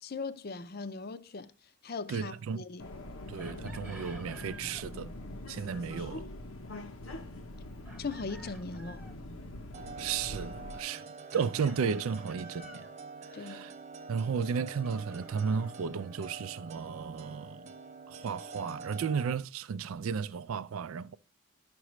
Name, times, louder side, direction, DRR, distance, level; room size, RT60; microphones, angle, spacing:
voice 1, 0.0-1.5 1.8-2.9 8.0-9.1 13.3-13.7, left 4 dB, 45° left, 0.5 m, -39 dB
voice 2, 2.1-2.6 3.3-5.1 5.5-6.3 10.0-11.1 11.3-12.9 13.3-13.7 14.1-17.7 18.1-21.2, right 6 dB, 85° right, 0.4 m, -34 dB
Subway metro underground, 2.8-10.8, left 1 dB, 85° left, 0.9 m, -44 dB
Chicken rooster, 3.4-4.9 7.9-9.2 11.3-12.9 14.8-16.4, right 1 dB, 5° right, 0.8 m, -52 dB
sound 1, 9.7-19.3, right 3 dB, 35° right, 0.5 m, -46 dB
11.5 x 6.1 x 3.1 m
head